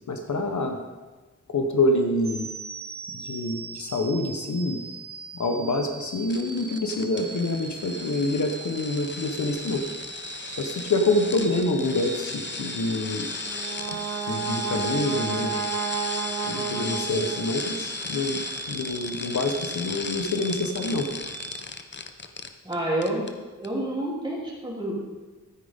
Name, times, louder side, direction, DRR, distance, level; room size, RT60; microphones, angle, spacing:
voice 1, 0.1-0.8 1.5-2.5 3.1-4.8 5.3-9.8 10.6-13.3 14.3-15.7 16.5-18.4 18.7-21.1, left 2 dB, 65° left, 4 dB, 1.1 m, -26 dB
sound 1, 2.2-21.6, right 4 dB, 30° right, 0.5 m, -40 dB
sound 2, 6.3-22.7 23.0-23.3 23.6-23.7, left 4 dB, 35° left, 0.7 m, -36 dB
Brass instrument, 13.4-17.8, right 7 dB, 60° right, 1.0 m, -31 dB
voice 2, 22.6-23.2 23.6-24.9, right 1 dB, 15° right, -5 dB, 3.3 m, -28 dB
12.5 x 9.3 x 3.7 m, 1.2 s
wide cardioid pair, 120°, 31 cm